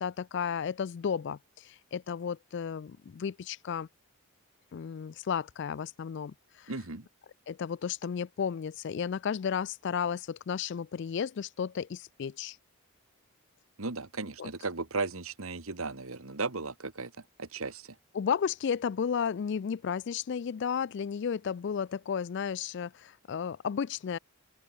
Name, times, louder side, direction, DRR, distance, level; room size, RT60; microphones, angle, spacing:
voice 1, 0.0-3.9 4.7-6.7 7.5-12.6 14.4-14.5 18.1-24.2, left 7 dB, 55° left, 0.3 m, -33 dB
voice 2, 6.7-7.1 13.8-17.1 17.4-17.9, right 3 dB, 70° right, 1.7 m, -35 dB
open air
head